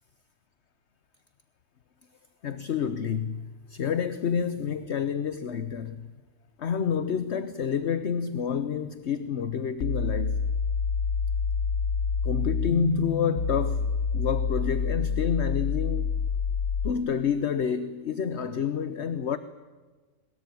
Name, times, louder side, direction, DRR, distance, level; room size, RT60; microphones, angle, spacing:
voice 1, 2.4-6.1 6.6-10.4 12.2-13.9 14.1-16.2 16.8-19.4, left 7 dB, 55° left, 1.1 m, -28 dB
sound 1, 9.8-16.9, left 5 dB, 75° left, 1.4 m, -27 dB
22.0 x 21.0 x 9.4 m
omnidirectional pair, 1.5 m